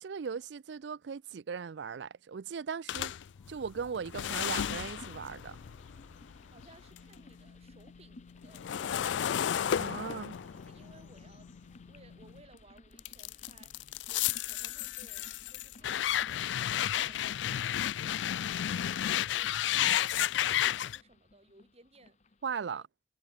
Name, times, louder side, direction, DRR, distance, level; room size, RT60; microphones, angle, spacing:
voice 1, 0.0-3.1 3.5-5.6 9.8-10.4 22.4-22.8, right 6 dB, 65° right, 0.4 m, -38 dB
sound 1, 2.9-7.1 7.5-12.4 13.0-21.0, left 10 dB, 75° left, 0.4 m, -33 dB
sound 2, 3.1-13.0, equal, 10° left, 1.6 m, -60 dB
sound 3, 4.3-22.5, left 2 dB, 40° left, 1.0 m, -58 dB
voice 2, 6.5-10.0 10.6-11.5 11.9-22.2 22.7-22.8, right 2 dB, 35° right, 7.0 m, -60 dB
head